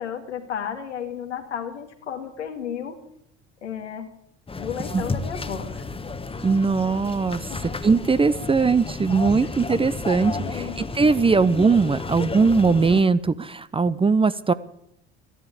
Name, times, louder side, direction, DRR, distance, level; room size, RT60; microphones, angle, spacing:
voice 1, 0.0-3.0 3.6-4.1 4.6-5.8 7.5-7.8 10.3-10.8, left 8 dB, 85° left, 3 dB, 2.0 m, -33 dB
sound 1, 4.5-13.0, left 3 dB, 15° left, 1.3 m, -32 dB
voice 2, 6.4-7.4 7.8-14.5, right 4 dB, 15° right, 16 dB, 0.7 m, -20 dB
14.5 x 11.0 x 8.4 m, 0.76 s
figure-of-eight pair, 65°, 34 cm